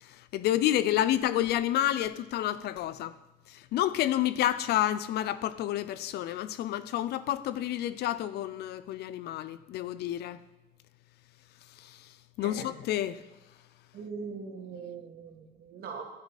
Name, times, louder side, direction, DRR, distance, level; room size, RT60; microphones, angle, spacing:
voice 1, 0.0-3.1 3.5-10.4 11.8-12.1 12.4-13.2, left 12 dB, 75° left, 0.6 m, -29 dB
voice 2, 12.4-12.7 13.9-16.0, right 5 dB, 65° right, 2.4 m, -41 dB
14.0 x 9.5 x 4.2 m
cardioid pair, 110°, 17 cm